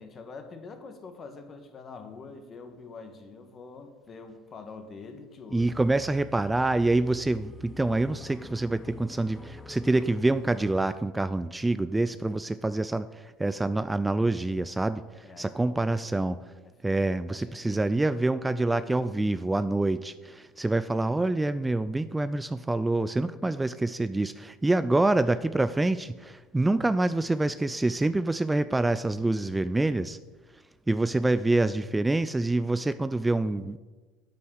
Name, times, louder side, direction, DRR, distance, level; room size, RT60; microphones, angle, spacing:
voice 1, 0.0-5.7 15.2-16.1 17.3-17.8, left 4 dB, 35° left, 7 dB, 1.6 m, -45 dB
voice 2, 5.5-16.4 16.8-30.2 30.9-33.8, right 2 dB, 10° right, 13 dB, 0.4 m, -26 dB
sound 1, 5.6-10.9, left 3 dB, 15° left, 0.8 m, -46 dB
8.4 x 7.9 x 6.5 m, 1.3 s
hypercardioid pair, 80°, 0 cm